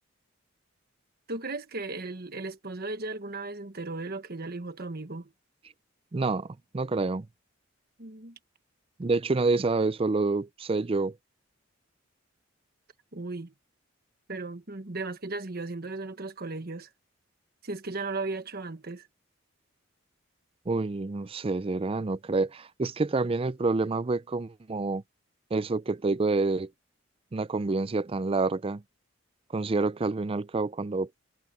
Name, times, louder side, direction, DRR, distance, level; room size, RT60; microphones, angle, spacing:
voice 1, 1.3-5.3 8.0-8.4 13.1-13.5 14.3-16.9 17.6-19.1, right 3 dB, 50° right, 1.4 m, -36 dB
voice 2, 6.1-6.5 6.7-7.3 9.0-11.1 20.7-25.0 25.5-26.7 27.3-28.8 29.5-31.1, right 3 dB, 30° right, 0.4 m, -28 dB
head